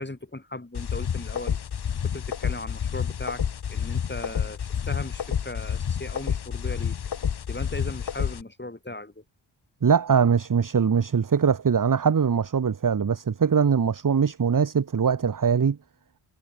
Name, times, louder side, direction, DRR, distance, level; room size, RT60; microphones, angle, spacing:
voice 1, 0.0-1.6 2.0-7.0 7.5-9.2, left 2 dB, 20° left, 4.3 m, -37 dB
sound 1, 0.7-8.4, left 8 dB, 55° left, 1.0 m, -29 dB
voice 2, 9.8-15.8, right 6 dB, 40° right, 1.0 m, -22 dB
cardioid pair, 45°, 48 cm